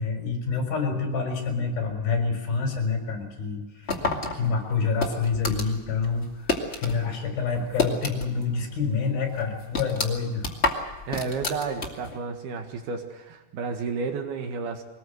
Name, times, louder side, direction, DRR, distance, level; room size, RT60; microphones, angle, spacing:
voice 1, 0.0-4.1 4.3-10.5, left 5 dB, 60° left, 3 dB, 5.9 m, -27 dB
sound 1, 3.9-7.0 7.3-8.5 8.8-8.9 9.3-12.2, left 2 dB, 25° left, 1.3 m, -29 dB
voice 2, 11.1-14.8, right 4 dB, 70° right, 5 dB, 3.5 m, -31 dB
23.0 x 19.5 x 7.9 m, 1.1 s
omnidirectional pair, 4.9 m